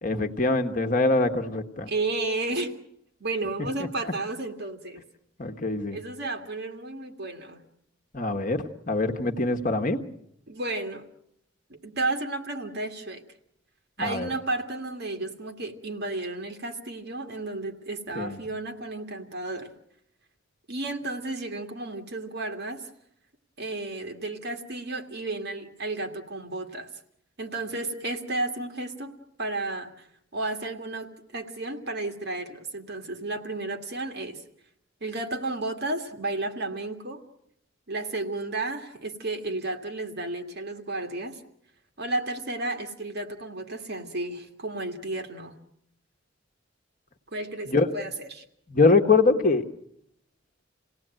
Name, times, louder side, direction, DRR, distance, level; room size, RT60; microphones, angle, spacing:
voice 1, 0.0-1.9 5.4-6.0 8.1-10.0 14.0-14.3 18.1-18.4 47.7-47.9 48.7-49.6, left 3 dB, 40° left, 6 dB, 1.4 m, -23 dB
voice 2, 1.9-2.7 3.2-5.0 5.9-7.7 10.5-11.1 11.7-13.2 14.0-19.7 20.7-22.8 23.6-26.9 27.4-29.1 29.4-30.1 30.3-34.4 35.0-37.2 37.9-41.4 42.0-45.6 47.3-48.4, right 2 dB, 55° right, 5 dB, 2.2 m, -32 dB
28.0 x 17.5 x 9.1 m, 0.75 s
head